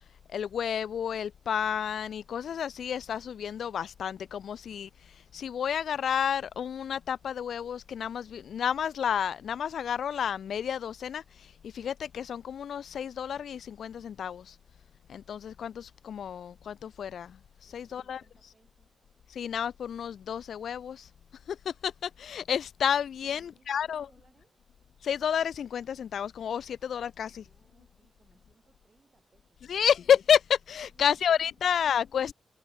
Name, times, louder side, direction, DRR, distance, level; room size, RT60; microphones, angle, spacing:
voice 1, 0.3-14.6 15.1-18.2 19.3-21.1 21.5-24.1 25.0-27.4 29.7-32.3, left 8 dB, 75° left, 0.3 m, -30 dB
voice 2, 17.7-18.9 23.2-24.6 27.3-29.9 30.9-32.0, right 4 dB, 30° right, 3.2 m, -66 dB
wide cardioid pair, 180°, 0 cm